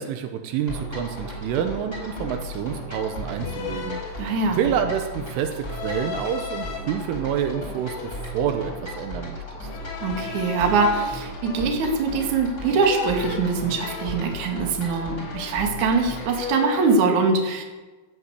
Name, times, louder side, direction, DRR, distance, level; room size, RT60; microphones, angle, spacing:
voice 1, 0.0-4.2 4.5-9.7, right 9 dB, 80° right, 6 dB, 3.5 m, -28 dB
sound 1, 0.7-16.6, left 1 dB, 20° left, 4.5 m, -36 dB
sound 2, 1.0-1.2 2.0-2.6 3.4-4.8 5.6-6.8 7.3-8.9 9.7-12.1 12.6-14.9 15.2-15.9 16.2-17.1, left 6 dB, 80° left, 5.3 m, -37 dB
voice 2, 4.2-4.7 10.0-17.6, right 4 dB, 50° right, 2 dB, 2.8 m, -23 dB
13.5 x 12.5 x 8.2 m, 1.2 s
omnidirectional pair, 5.8 m